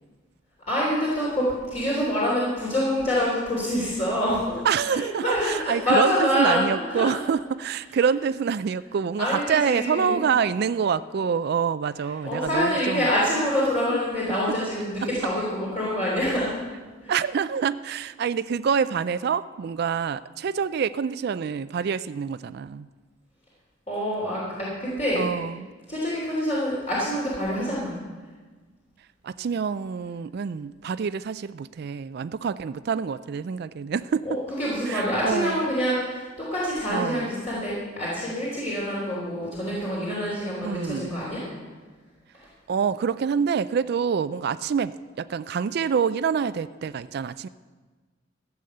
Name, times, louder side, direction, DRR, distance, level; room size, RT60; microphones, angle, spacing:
voice 1, 0.7-1.4 1.7-7.2 9.2-10.2 12.2-16.6 17.0-17.1 23.9-25.2 25.9-27.9 34.2-41.4, equal, 35° left, -7 dB, 3.3 m, -26 dB
voice 2, 4.6-13.1 13.9-14.0 17.1-22.9 25.2-25.7 29.2-34.3 34.9-35.7 36.9-37.3 40.6-41.2 42.7-47.5, right 6 dB, 55° right, 14 dB, 0.3 m, -26 dB
15.0 x 7.0 x 7.8 m, 1.4 s
head